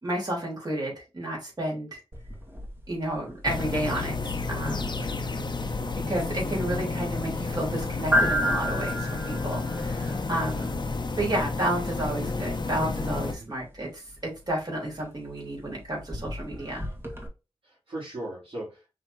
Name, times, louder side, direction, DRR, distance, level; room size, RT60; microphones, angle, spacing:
voice 1, 0.0-2.0 2.9-5.1 6.1-10.9 11.2-16.9, right 1 dB, 40° right, -3 dB, 3.1 m, -31 dB
sound 1, 2.1-17.3, equal, 25° right, 1.7 m, -34 dB
sound 2, 3.4-13.3, left 3 dB, 50° left, 0.9 m, -31 dB
voice 2, 5.0-5.8 13.3-13.5 17.6-18.9, right 1 dB, 65° right, -6 dB, 2.5 m, -39 dB
5.6 x 3.6 x 2.6 m, 0.28 s
cardioid pair, 45°, 10 cm